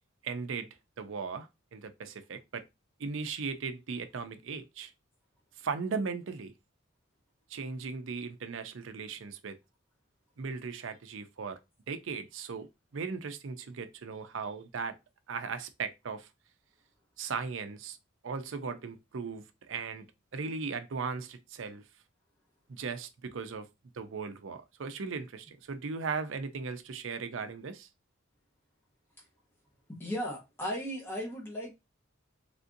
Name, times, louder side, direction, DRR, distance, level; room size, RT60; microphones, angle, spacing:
voice 1, 0.2-0.7 1.0-2.6 3.0-4.9 5.6-6.5 7.5-9.6 10.4-11.6 11.9-15.0 15.3-16.3 17.2-18.0 18.2-20.0 20.3-21.8 22.7-23.7 23.9-27.9, right 5 dB, 65° right, 0.5 m, -37 dB
voice 2, 30.0-31.7, equal, 10° left, 0.9 m, -36 dB
3.4 x 2.6 x 2.5 m
head